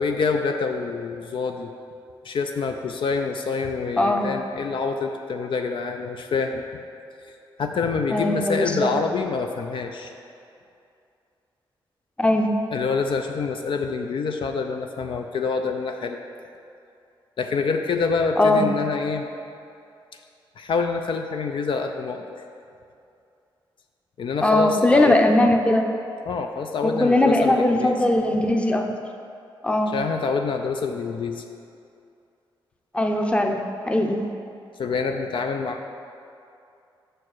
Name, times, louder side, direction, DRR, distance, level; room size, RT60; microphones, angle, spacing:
voice 1, 0.0-1.7 2.2-6.6 7.6-10.1 12.7-16.2 17.4-19.3 20.6-22.3 24.2-25.2 26.2-28.0 29.9-31.4 34.8-35.9, left 4 dB, 65° left, 4 dB, 0.5 m, -26 dB
voice 2, 4.0-4.3 8.1-8.9 12.2-12.5 18.4-18.7 24.4-25.9 26.8-28.9 29.6-29.9 32.9-33.6 33.9-34.3, left 1 dB, 10° left, 4 dB, 0.7 m, -20 dB
6.1 x 4.5 x 6.5 m, 2.5 s
cardioid pair, 70°, 9 cm